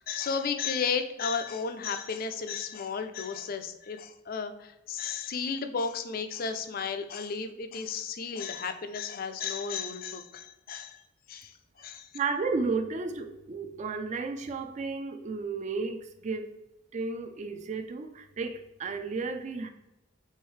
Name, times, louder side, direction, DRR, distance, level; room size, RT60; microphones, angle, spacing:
voice 1, 0.1-11.0 11.3-11.5 11.8-12.1, left 5 dB, 45° left, 0.4 m, -33 dB
voice 2, 12.1-16.6 16.9-19.7, right 4 dB, 35° right, 0.4 m, -33 dB
4.6 x 3.5 x 3.1 m
head